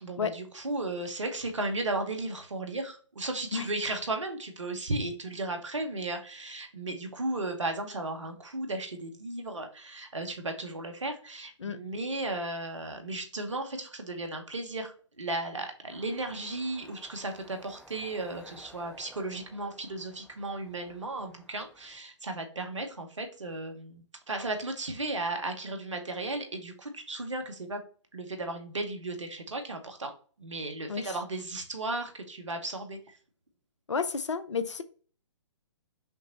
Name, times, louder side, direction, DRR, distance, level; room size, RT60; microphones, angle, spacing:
voice 1, 0.0-27.8 28.1-30.1 30.4-33.0, right 2 dB, 70° right, 1.0 m, -35 dB
sound 1, 15.9-22.0, right 1 dB, ahead, 0.5 m, -56 dB
voice 2, 33.9-34.8, left 5 dB, 65° left, 0.5 m, -31 dB
5.7 x 2.1 x 4.0 m
figure-of-eight pair, 125°, 16 cm